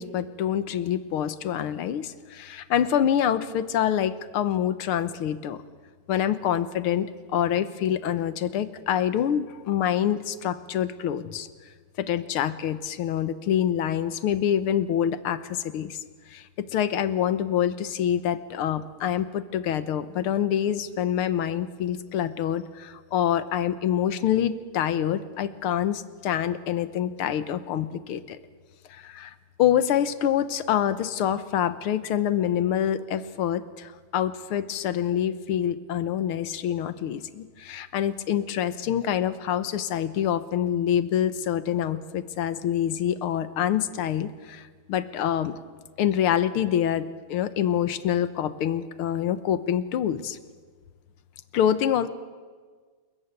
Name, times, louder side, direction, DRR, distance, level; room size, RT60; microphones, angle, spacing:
voice 1, 0.0-5.6 6.1-11.5 12.0-16.0 16.3-28.4 28.9-45.6 46.0-50.4 51.5-52.1, left 10 dB, 80° left, 13 dB, 1.9 m, -26 dB
27.5 x 14.5 x 9.5 m, 1.5 s
omnidirectional pair, 2.4 m